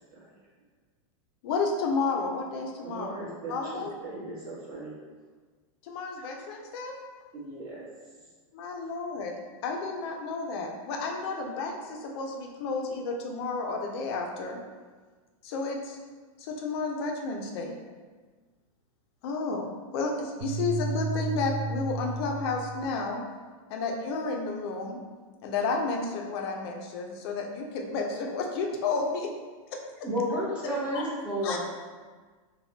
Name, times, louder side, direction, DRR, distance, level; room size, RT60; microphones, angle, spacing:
voice 1, 1.4-3.1 3.5-3.9 5.8-7.0 8.5-9.3 9.6-14.6 15.4-16.0 16.4-17.8 19.2-23.2 23.7-25.0 25.4-29.3 29.7-29.8 30.9-31.0 31.4-31.6, left 3 dB, 45° left, 2 dB, 0.4 m, -31 dB
voice 2, 2.8-4.9 7.3-7.9, right 2 dB, 35° right, -8 dB, 1.2 m, -40 dB
sound 1, 20.4-22.9, right 2 dB, 55° right, 0.4 m, -32 dB
voice 3, 30.0-31.6, equal, 5° right, -9 dB, 0.7 m, -30 dB
3.3 x 2.2 x 2.7 m, 1.4 s
supercardioid pair, 155°, 18 cm